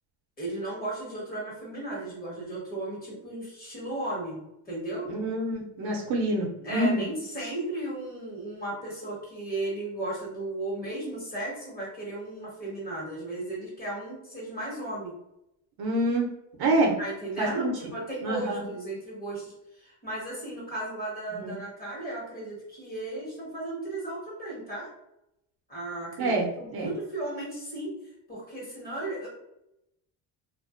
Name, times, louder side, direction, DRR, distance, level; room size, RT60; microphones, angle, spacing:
voice 1, 0.4-5.1 6.6-15.1 17.0-24.9 25.7-28.0 28.3-29.3, right 2 dB, 20° left, -6 dB, 1.3 m, -35 dB
voice 2, 5.1-7.0 15.8-16.3 16.6-16.9 17.4-17.7 18.2-18.6 21.4-21.5 26.2-26.4 26.7-26.9, right 1 dB, 60° right, 0 dB, 0.7 m, -26 dB
2.4 x 2.2 x 2.4 m, 0.84 s
cardioid pair, 120°, 43 cm